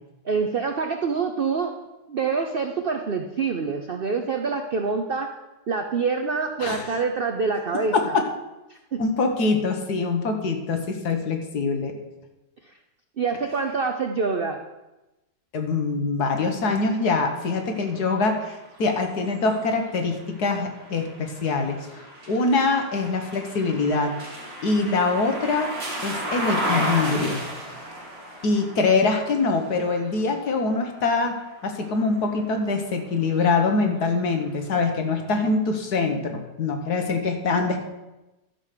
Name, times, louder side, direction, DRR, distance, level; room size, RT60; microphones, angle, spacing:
voice 1, 0.2-1.8 2.1-5.3 5.7-8.2 8.7-9.0 13.2-14.6, right 5 dB, 70° right, 5 dB, 0.5 m, -26 dB
voice 2, 9.0-12.0 15.5-24.1 24.6-25.7 26.0-27.4 28.4-31.3 31.6-37.8, left 3 dB, 60° left, 4 dB, 1.7 m, -24 dB
sound 1, 16.7-32.7 33.2-34.4, right 1 dB, 35° right, 2.0 m, -35 dB
12.0 x 5.2 x 6.7 m, 1.0 s
omnidirectional pair, 1.9 m